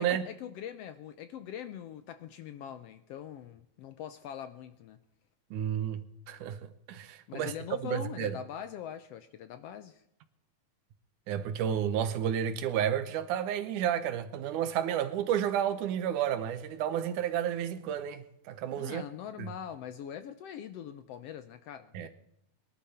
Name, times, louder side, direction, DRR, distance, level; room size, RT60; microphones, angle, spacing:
voice 1, 0.0-5.0 7.3-10.0 18.7-22.1, left 9 dB, 75° left, 1.4 m, -42 dB
voice 2, 5.5-6.6 6.9-7.5 7.8-8.3 11.3-19.0 19.4-19.5 21.9-22.1, right 9 dB, 90° right, 2.5 m, -31 dB
22.5 x 11.5 x 4.3 m
omnidirectional pair, 3.5 m